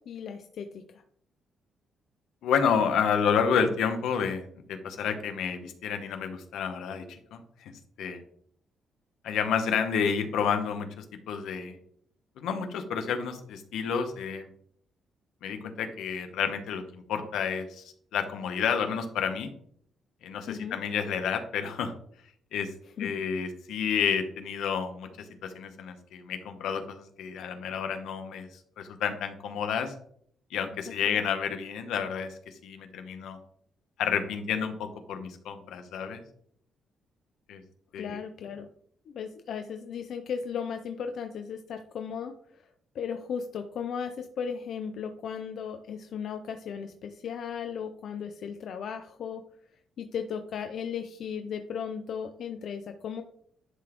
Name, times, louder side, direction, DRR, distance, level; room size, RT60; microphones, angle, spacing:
voice 1, 0.1-1.0 20.5-20.8 23.0-23.1 31.1-31.2 38.0-38.7 39.1-42.3 42.9-49.4 50.0-53.2, left 7 dB, 65° left, 6 dB, 0.5 m, -36 dB
voice 2, 2.4-7.7 8.0-8.2 9.2-11.8 12.4-14.5 15.4-17.8 18.1-19.5 20.2-21.9 22.5-22.7 23.0-28.5 28.8-29.9 30.5-33.4 34.0-36.2 37.5-37.6 37.9-38.2, left 7 dB, 85° left, 7 dB, 0.9 m, -30 dB
11.0 x 4.0 x 3.0 m, 0.64 s
cardioid pair, 115°, 0 cm